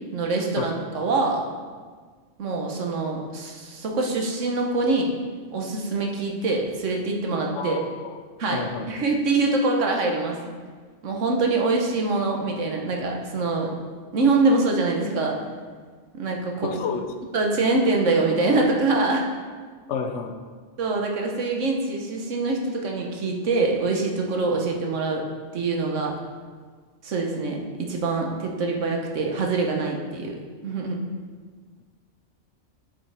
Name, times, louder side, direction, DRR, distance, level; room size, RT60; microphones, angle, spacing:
voice 1, 0.1-1.4 2.4-5.1 5.5-7.8 8.4-10.4 11.0-13.7 14.1-15.4 16.1-16.7 17.3-19.3 20.8-25.2 25.5-26.1 27.0-30.3 30.6-31.0, right 3 dB, 80° right, 1 dB, 1.4 m, -24 dB
voice 2, 7.6-8.1 8.5-8.9 16.6-17.0 19.9-20.3, left 6 dB, 75° left, 6 dB, 1.0 m, -30 dB
7.8 x 7.6 x 3.4 m, 1.5 s
omnidirectional pair, 1.3 m